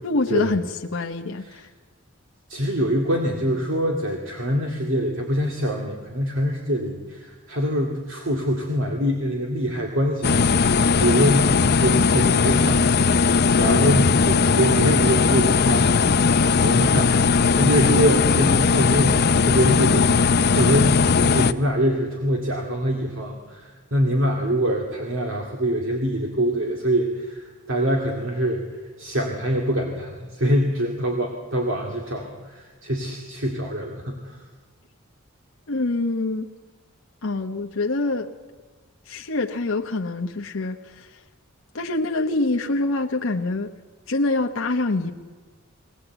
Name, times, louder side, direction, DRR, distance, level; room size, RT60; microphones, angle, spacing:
voice 1, 0.0-1.7 35.7-36.5 37.2-38.3 39.1-41.2 41.7-43.7 44.1-45.1, left 2 dB, 75° left, 3 dB, 0.9 m, -25 dB
voice 2, 2.5-34.4, equal, 70° right, 1 dB, 2.3 m, -24 dB
sound 1, 10.2-21.5, left 5 dB, 50° left, 0.6 m, -18 dB
21.5 x 18.5 x 8.0 m, 1.4 s
head